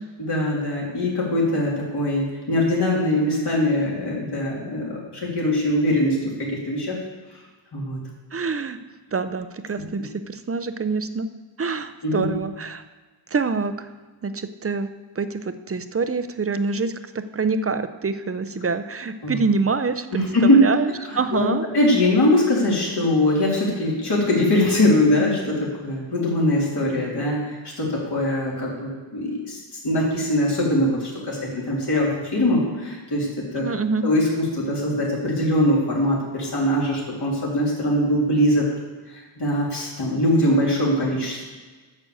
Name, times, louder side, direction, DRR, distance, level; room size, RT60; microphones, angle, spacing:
voice 1, 0.2-7.0 7.7-8.0 12.0-12.3 19.2-19.4 20.1-20.6 21.3-29.6 29.8-31.4 31.7-33.3 33.5-33.6 34.0-38.7 39.1-41.4, left 1 dB, 55° left, -5 dB, 3.0 m, -22 dB
voice 2, 8.3-8.8 9.1-11.3 11.6-12.8 13.3-13.9 14.2-14.9 15.2-21.6 33.5-34.0, right 4 dB, 30° right, 11 dB, 0.6 m, -26 dB
9.3 x 6.8 x 7.0 m, 1.4 s
wide cardioid pair, 115°, 47 cm